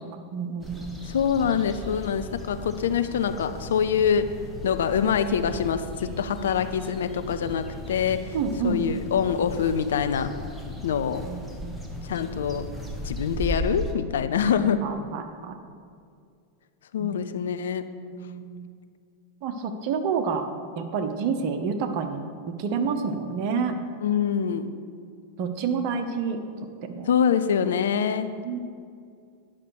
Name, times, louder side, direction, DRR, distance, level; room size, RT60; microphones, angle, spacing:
voice 1, 0.3-0.9 8.3-8.8 11.2-11.8 14.5-15.6 17.0-17.1 18.1-18.7 19.4-20.5 20.8-22.2 22.6-23.7 25.4-26.4 26.8-27.1 28.4-28.6, right 5 dB, 45° right, 6 dB, 0.9 m, -29 dB
sound 1, 0.6-13.9, equal, 5° right, 1.2 m, -37 dB
voice 2, 1.1-4.3 4.6-8.3 8.6-10.3 10.8-11.2 12.1-12.7 13.0-14.8 16.9-17.8 24.0-24.7 27.1-28.3, left 7 dB, 60° left, 10 dB, 0.5 m, -25 dB
9.9 x 5.7 x 6.4 m, 2.3 s
figure-of-eight pair, 90°, 0 cm